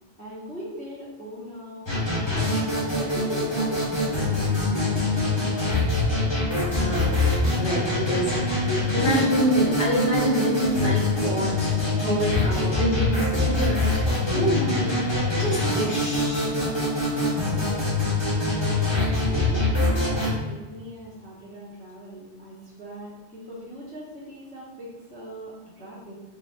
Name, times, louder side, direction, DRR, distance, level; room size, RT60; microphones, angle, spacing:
voice 1, 0.2-2.5 2.9-5.1 19.2-26.2, equal, 10° left, -8 dB, 0.7 m, -40 dB
sound 1, 1.9-20.3, left 2 dB, 25° left, 1.1 m, -24 dB
voice 2, 6.7-7.2 7.6-11.7 12.0-14.0 14.3-15.0 15.3-16.6, equal, 50° left, -6 dB, 1.1 m, -26 dB
4.1 x 3.4 x 2.3 m, 1.3 s
omnidirectional pair, 1.2 m